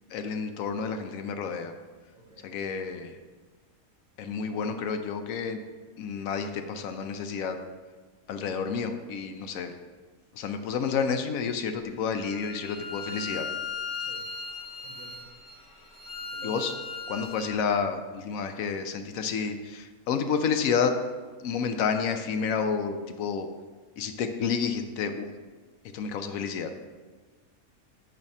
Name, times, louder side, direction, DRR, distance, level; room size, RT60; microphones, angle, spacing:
voice 1, 0.1-1.7 2.4-3.2 4.2-5.6 6.0-7.6 8.3-9.7 10.3-13.5 16.4-16.7 17.1-20.9 21.4-23.5 24.0-25.3 25.9-26.7, left 6 dB, 75° left, 7 dB, 1.0 m, -30 dB
voice 2, 2.1-2.5 14.0-14.2 14.8-15.2 16.3-16.7, right 2 dB, 65° right, -2 dB, 1.3 m, -49 dB
Bowed string instrument, 12.1-17.5, left 4 dB, 30° left, 0.6 m, -38 dB
7.1 x 3.2 x 5.2 m, 1.3 s
omnidirectional pair, 1.5 m